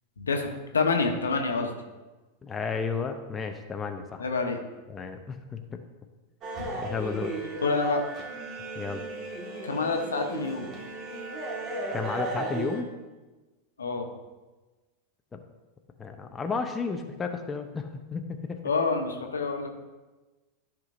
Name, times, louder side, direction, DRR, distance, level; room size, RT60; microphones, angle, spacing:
voice 1, 0.2-1.7 4.2-4.6 7.6-8.0 9.6-10.7 13.8-14.1 18.6-19.7, left 4 dB, 75° left, 3 dB, 1.1 m, -27 dB
voice 2, 2.4-4.2 4.9-5.8 6.8-7.3 8.8-9.0 11.9-12.9 15.3-15.4 16.0-18.6, left 5 dB, 20° left, 5 dB, 0.7 m, -33 dB
sound 1, 6.4-12.8, right 2 dB, 35° right, 1.7 m, -35 dB
13.0 x 5.9 x 2.6 m, 1.2 s
figure-of-eight pair, 90°, 0 cm